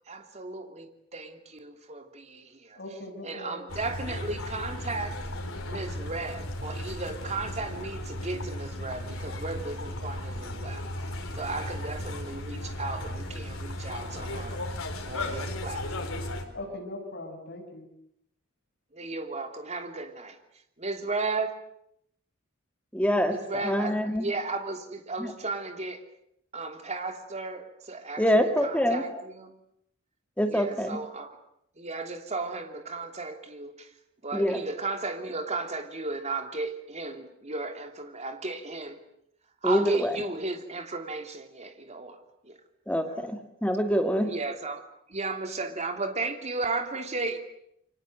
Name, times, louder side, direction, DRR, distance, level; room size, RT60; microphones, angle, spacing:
voice 1, 0.1-2.8 3.2-5.1 5.7-10.9 11.4-14.6 15.1-15.8 18.9-20.4 20.8-21.6 23.3-26.0 26.5-28.3 28.6-29.5 30.5-31.4 31.8-33.9 34.2-39.0 39.6-42.2 42.4-42.6 44.2-44.8 45.1-47.4, right 3 dB, 35° right, 6 dB, 3.0 m, -35 dB
voice 2, 2.7-3.6 16.5-17.9, left 1 dB, 55° left, 2 dB, 6.4 m, -40 dB
sound 1, 3.7-16.5, left 1 dB, 90° left, 4.3 m, -35 dB
voice 3, 22.9-24.3 25.2-25.3 28.2-29.2 30.4-31.0 34.3-34.6 39.6-40.2 42.9-44.3, equal, 5° left, 6 dB, 2.2 m, -26 dB
28.5 x 24.0 x 7.9 m, 0.75 s
head